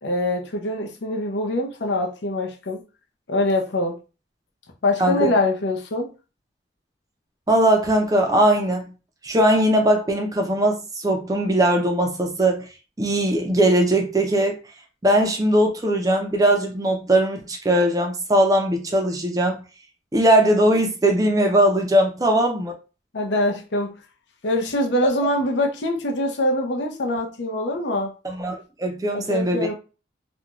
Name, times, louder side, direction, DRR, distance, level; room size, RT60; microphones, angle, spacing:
voice 1, 0.0-2.8 3.3-4.0 4.8-6.1 23.1-23.9 24.4-28.1 29.1-29.7, left 1 dB, 75° left, 0.6 m, -24 dB
voice 2, 5.0-5.3 7.5-8.8 9.2-12.7 13.0-14.6 15.0-19.6 20.1-22.8 28.2-29.7, right 1 dB, 20° right, 0.4 m, -20 dB
2.5 x 2.2 x 2.9 m
head